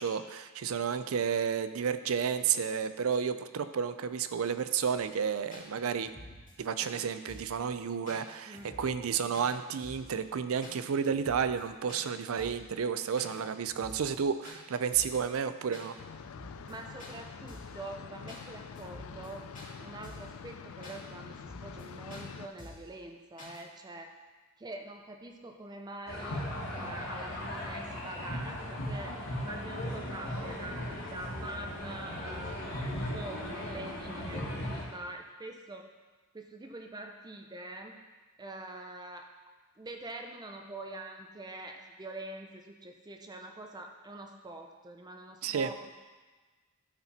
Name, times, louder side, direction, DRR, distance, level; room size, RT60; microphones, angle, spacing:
voice 1, 0.0-6.1 6.6-16.0 45.4-45.7, right 7 dB, 80° right, 11 dB, 0.4 m, -31 dB
sound 1, 5.0-5.1 5.5-5.7 6.0-6.5 6.8-6.9 7.3-7.6 8.1-8.2 8.5-9.1 9.3-9.5 9.8-10.1 10.6-10.8 11.1-11.6 11.9-12.0 12.4-12.7 13.2-13.4 13.6-14.2 14.4-14.6 14.9-15.2 15.7-15.9 16.2-16.7 17.0-17.1 17.5-17.8 18.3-18.4 18.8-19.3 19.6-19.7 20.0-20.3 20.8-21.0 21.3-21.8 22.1-22.3 22.6-22.9 23.4-23.6, left 1 dB, 40° left, 2.2 m, -49 dB
sound 2, 16.0-22.5, left 6 dB, 90° left, 0.4 m, -46 dB
voice 2, 16.6-19.5 19.8-24.1 24.6-35.9 36.3-37.9 38.4-39.3 39.8-45.9, right 2 dB, 20° right, 3 dB, 0.5 m, -45 dB
sound 3, 26.1-34.8, left 1 dB, 65° left, 2.4 m, -37 dB
13.0 x 4.4 x 4.2 m, 1.3 s
head